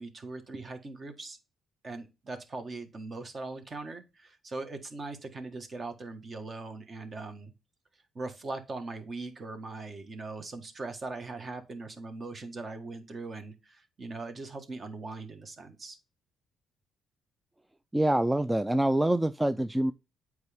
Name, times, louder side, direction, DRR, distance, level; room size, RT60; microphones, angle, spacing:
voice 1, 0.0-1.4 1.8-7.5 8.1-16.0, right 3 dB, 40° right, 1.5 m, -40 dB
voice 2, 17.9-19.9, right 1 dB, 10° right, 0.4 m, -25 dB
8.1 x 4.8 x 3.5 m
cardioid pair, 90°, 0 cm